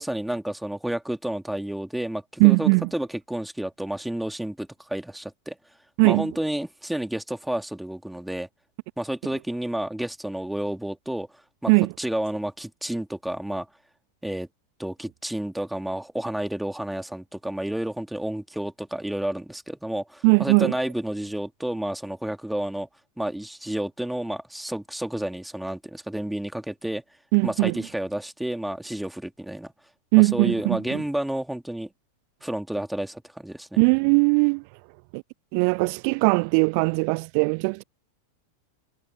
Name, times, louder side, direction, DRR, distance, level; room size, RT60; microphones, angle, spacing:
voice 1, 0.0-5.6 6.0-8.5 9.0-11.3 11.6-11.7 12.0-13.7 14.2-14.5 14.8-22.9 23.2-27.0 27.4-29.7 30.2-31.9 32.4-33.8, right 1 dB, ahead, 3.3 m, -30 dB
voice 2, 2.4-2.9 6.0-6.3 11.7-11.9 20.2-20.7 27.3-27.8 30.1-31.0 33.8-34.6 35.1-35.2 35.5-37.8, right 40 dB or more, 45° right, 0.3 m, -20 dB
figure-of-eight pair, 90°, 0 cm